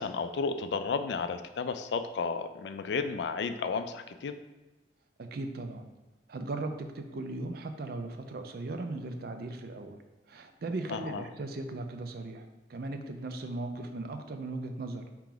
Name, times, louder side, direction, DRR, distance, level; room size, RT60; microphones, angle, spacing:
voice 1, 0.0-4.3 10.9-11.2, left 5 dB, 70° left, 9 dB, 0.3 m, -33 dB
voice 2, 5.2-5.9 6.3-10.0 10.3-15.0, right 2 dB, 55° right, 6 dB, 0.4 m, -38 dB
4.6 x 2.9 x 3.8 m, 1.1 s
head